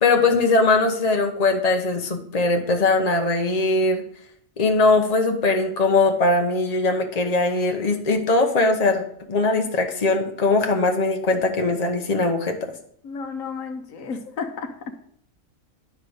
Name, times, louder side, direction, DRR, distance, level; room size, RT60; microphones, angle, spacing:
voice 1, 0.0-4.0 4.6-9.0 9.3-12.7, left 3 dB, 30° left, 4 dB, 1.0 m, -20 dB
voice 2, 13.0-14.9, left 5 dB, 70° left, 7 dB, 1.2 m, -32 dB
10.5 x 3.8 x 6.4 m, 0.64 s
omnidirectional pair, 1.4 m